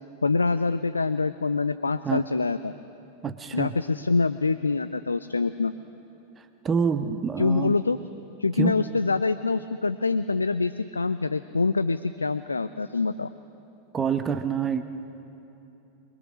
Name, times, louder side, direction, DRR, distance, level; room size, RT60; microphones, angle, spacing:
voice 1, 0.2-2.7 3.5-5.7 7.4-8.0 8.4-13.3, left 4 dB, 80° left, 13 dB, 0.5 m, -25 dB
voice 2, 3.2-3.8 6.4-7.8 8.6-8.8 13.9-14.8, right 6 dB, 20° right, 9 dB, 1.0 m, -27 dB
24.0 x 22.0 x 6.3 m, 2.9 s
figure-of-eight pair, 90°, 0 cm